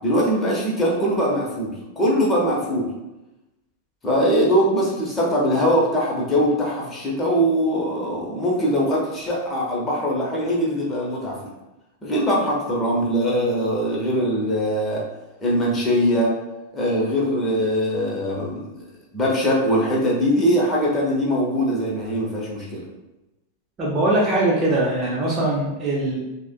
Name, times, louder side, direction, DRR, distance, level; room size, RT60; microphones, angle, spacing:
voice 1, 0.0-2.9 4.0-11.4 12.0-15.0 15.4-16.3 16.7-18.8 19.1-22.9, equal, 20° left, -4 dB, 1.1 m, -22 dB
voice 2, 23.8-26.2, right 2 dB, 25° right, -4 dB, 0.9 m, -21 dB
6.0 x 2.3 x 2.2 m, 1.0 s
figure-of-eight pair, 90°, 0 cm